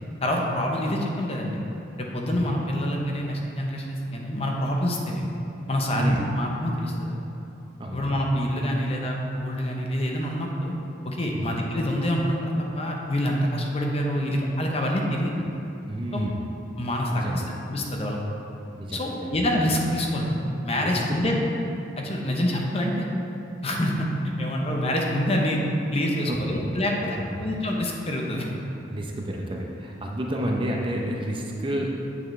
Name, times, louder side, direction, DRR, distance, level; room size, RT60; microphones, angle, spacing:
voice 1, 0.2-1.6 2.0-5.2 5.7-7.2 7.9-10.7 11.0-15.4 16.1-16.3 16.8-18.2 18.9-21.3 22.0-23.1 23.6-24.1 24.4-25.6 25.9-28.5, equal, 30° left, 0 dB, 0.7 m, -26 dB
voice 2, 7.8-8.1 11.3-11.5 15.9-16.4 17.1-17.5 18.7-19.3 20.8-20.9 26.3-26.4 27.1-27.4 28.9-32.2, right 1 dB, 25° right, 0 dB, 0.6 m, -30 dB
8.9 x 6.7 x 3.2 m, 2.8 s
head